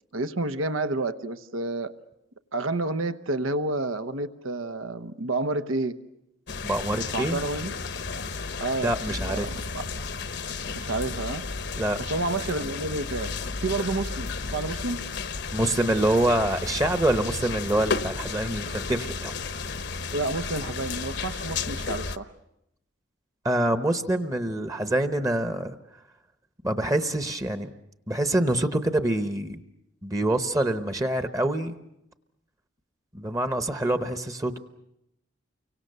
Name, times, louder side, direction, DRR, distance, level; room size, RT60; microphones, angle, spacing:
voice 1, 0.1-1.9 2.5-6.0 7.1-7.7 8.6-8.9 9.2-9.9 10.7-11.5 12.0-13.3 13.6-15.0 20.1-22.3, right 2 dB, 90° right, 12 dB, 1.0 m, -29 dB
sound 1, 6.5-22.2, left 4 dB, 55° left, 0.9 m, -33 dB
voice 2, 6.6-7.4 8.8-9.5 11.8-12.0 15.5-19.3 23.4-25.7 26.6-27.7 28.1-29.6 30.0-31.8 33.1-34.6, right 1 dB, 15° right, 9 dB, 0.9 m, -25 dB
29.5 x 24.0 x 6.8 m, 0.83 s
head